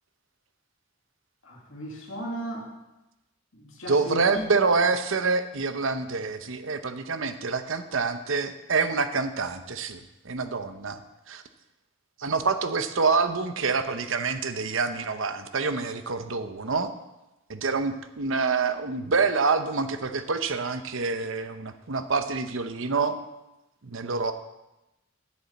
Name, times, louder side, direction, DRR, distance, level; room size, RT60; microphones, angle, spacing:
voice 1, 1.4-2.7 3.5-4.5, right 1 dB, 60° left, -1 dB, 2.0 m, -36 dB
voice 2, 3.9-11.0 11.3-11.4 12.2-16.9 17.5-23.2 23.8-24.3, right 4 dB, 60° right, 10 dB, 0.8 m, -27 dB
7.7 x 7.1 x 8.4 m, 0.97 s
head